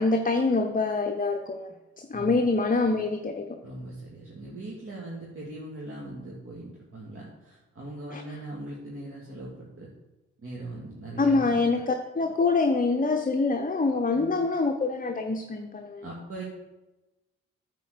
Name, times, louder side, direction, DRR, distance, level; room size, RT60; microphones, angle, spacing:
voice 1, 0.0-3.6 8.1-8.2 11.2-16.1, left 3 dB, 25° left, 5 dB, 0.9 m, -25 dB
voice 2, 2.1-2.5 3.6-9.9 10.4-11.6 14.1-14.4 16.0-16.4, right 2 dB, 40° right, -4 dB, 2.4 m, -40 dB
9.3 x 4.5 x 6.8 m, 1.1 s
hypercardioid pair, 40°, 34 cm